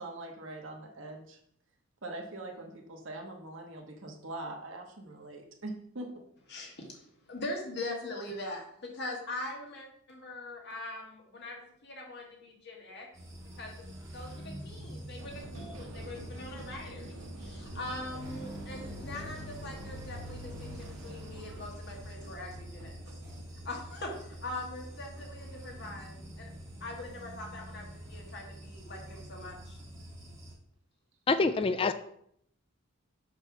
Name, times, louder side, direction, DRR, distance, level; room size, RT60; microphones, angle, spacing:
voice 1, 0.0-1.4 2.0-6.1, right 2 dB, 60° right, 1 dB, 1.3 m, -42 dB
voice 2, 6.5-13.1 13.6-13.9 14.1-23.0 23.7-26.5 26.8-29.8, left 2 dB, 50° left, 0 dB, 1.8 m, -42 dB
sound 1, 13.1-30.5, equal, 15° right, 1.6 m, -45 dB
sound 2, 15.2-29.0, right 1 dB, 90° right, 1.2 m, -50 dB
voice 3, 31.3-31.9, left 3 dB, 25° left, 11 dB, 0.3 m, -26 dB
6.7 x 3.4 x 6.0 m, 0.68 s
head